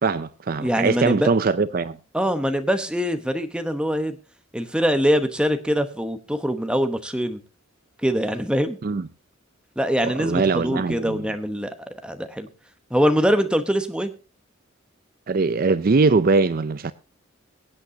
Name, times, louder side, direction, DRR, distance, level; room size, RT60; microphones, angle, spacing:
voice 1, 0.0-2.0 8.8-9.1 10.0-11.3 15.3-16.9, right 4 dB, 45° right, 0.5 m, -21 dB
voice 2, 0.6-1.3 2.1-4.2 4.5-7.4 8.0-8.8 9.8-12.5 12.9-14.1, equal, 5° right, 1.0 m, -23 dB
23.0 x 8.4 x 2.8 m
head